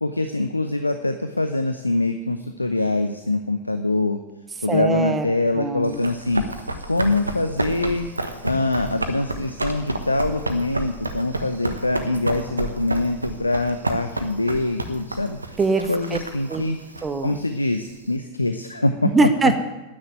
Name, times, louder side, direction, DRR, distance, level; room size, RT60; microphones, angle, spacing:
voice 1, 0.0-4.2 4.6-6.4 6.9-8.1 8.4-15.4 15.9-16.8 17.2-19.1, left 2 dB, 85° left, 8 dB, 0.8 m, -24 dB
voice 2, 4.7-5.3 5.6-6.0 15.6-16.2 16.5-16.6 17.0-17.4 19.0-19.6, right 3 dB, 15° right, 9 dB, 1.3 m, -22 dB
Run, 5.8-18.1, right 2 dB, 80° right, 1.3 m, -31 dB
10.0 x 9.8 x 9.3 m, 1.1 s
figure-of-eight pair, 90°, 0 cm